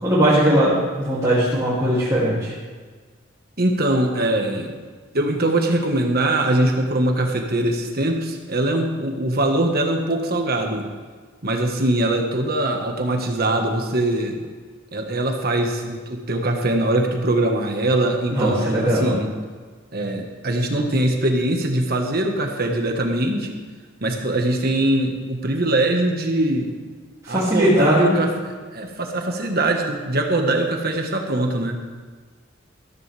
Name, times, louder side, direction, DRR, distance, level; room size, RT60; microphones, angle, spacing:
voice 1, 0.0-2.5 18.3-19.1 27.2-28.2, equal, 20° right, -11 dB, 2.9 m, -19 dB
voice 2, 3.6-4.8 5.1-10.8 11.4-14.4 14.9-19.3 19.9-23.6 24.0-26.7 27.3-31.8, right 1 dB, 50° right, 3 dB, 1.6 m, -22 dB
14.5 x 14.0 x 3.5 m, 1.5 s
head